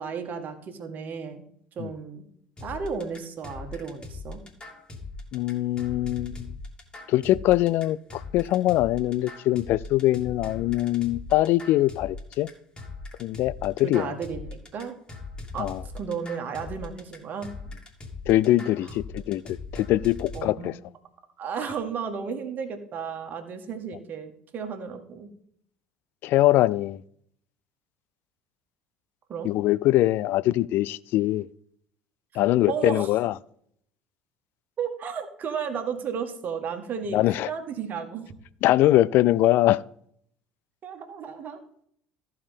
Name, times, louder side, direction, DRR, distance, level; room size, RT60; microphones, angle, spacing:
voice 1, 0.0-1.4 1.8-2.2 2.6-4.4 13.8-14.9 15.5-17.5 18.8-18.9 20.3-20.7 21.4-25.3 29.3-29.5 32.7-33.1 34.8-38.3 40.8-41.6, right 6 dB, 40° right, 1.8 m, -33 dB
sound 1, 2.6-20.4, left 3 dB, 20° left, 2.7 m, -40 dB
voice 2, 5.3-6.5 7.1-12.5 13.2-14.1 15.6-15.8 18.3-20.7 26.2-27.0 29.4-31.5 32.4-33.3 37.1-37.5 38.6-39.8, left 15 dB, 55° left, 0.4 m, -23 dB
14.5 x 4.8 x 5.3 m
figure-of-eight pair, 65°, 4 cm